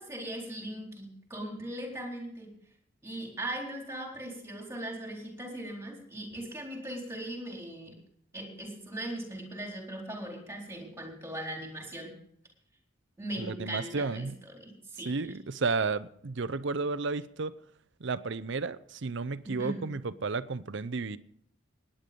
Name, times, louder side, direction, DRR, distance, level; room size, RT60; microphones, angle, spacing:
voice 1, 0.0-2.5 3.0-8.0 8.3-12.1 13.2-15.4 19.4-19.9, right 1 dB, 15° right, 4.0 m, -39 dB
voice 2, 13.4-14.3 15.1-17.5 18.0-21.2, right 4 dB, 60° right, 0.6 m, -32 dB
18.5 x 10.0 x 5.3 m
head